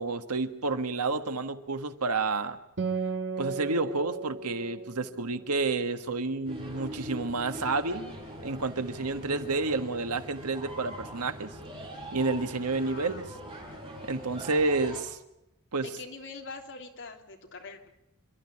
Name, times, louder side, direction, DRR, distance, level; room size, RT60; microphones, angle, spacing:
voice 1, 0.0-2.6 3.4-8.1 8.4-11.5 12.1-13.2 14.1-15.2 15.7-15.9, right 3 dB, 80° right, 9 dB, 1.6 m, -30 dB
Acoustic guitar, 2.8-6.5, right 5 dB, 55° right, 2.0 m, -36 dB
sound 1, 6.4-15.0, right 1 dB, 25° right, 7.5 m, -42 dB
voice 2, 12.8-13.3 15.8-17.9, left 4 dB, 60° left, 3 dB, 3.3 m, -44 dB
27.5 x 12.5 x 9.9 m, 0.89 s
head